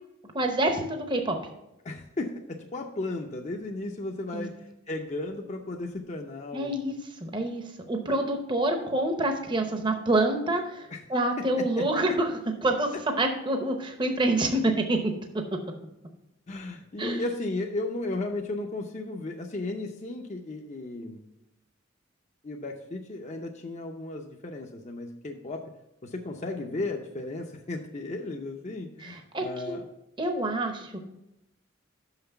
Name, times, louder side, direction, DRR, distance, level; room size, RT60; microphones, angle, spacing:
voice 1, 0.3-1.4 4.3-4.5 6.5-7.0 7.2-15.1 17.0-17.2 29.0-29.8 30.2-30.9, right 2 dB, 25° right, 5 dB, 0.7 m, -27 dB
voice 2, 1.8-6.8 10.9-11.0 11.4-11.8 16.5-21.2 22.4-25.6 26.0-29.9, left 2 dB, 35° left, 2 dB, 0.6 m, -35 dB
6.1 x 5.8 x 6.8 m, 0.89 s
head